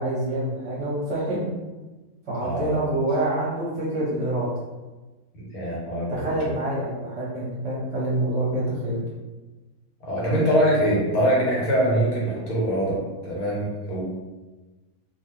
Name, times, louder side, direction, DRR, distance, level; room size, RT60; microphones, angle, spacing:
voice 1, 0.0-1.5 2.3-4.5 6.1-9.1, right 1 dB, 55° right, -6 dB, 0.9 m, -26 dB
voice 2, 2.4-3.0 5.3-6.6 10.0-14.0, equal, 75° left, -5 dB, 1.4 m, -24 dB
2.5 x 2.4 x 3.0 m, 1.2 s
omnidirectional pair, 1.6 m